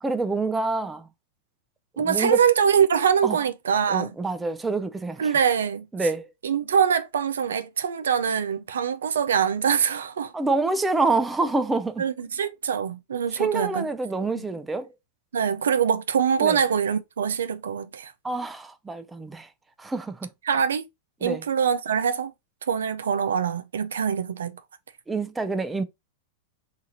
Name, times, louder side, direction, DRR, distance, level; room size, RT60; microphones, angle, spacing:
voice 1, 0.0-1.1 2.0-2.4 3.2-3.4 3.9-5.3 5.9-6.3 10.3-12.0 13.3-14.9 16.4-16.6 18.2-19.5 19.8-20.2 21.2-21.4 25.1-25.8, right 3 dB, 10° right, 0.4 m, -27 dB
voice 2, 2.0-4.1 5.2-5.9 6.4-10.3 12.0-13.9 14.3-14.4 15.3-18.1 20.4-20.8 21.2-22.3 22.7-24.5, right 7 dB, 85° right, 0.3 m, -24 dB
2.8 x 2.4 x 2.7 m
hypercardioid pair, 115°, 0 cm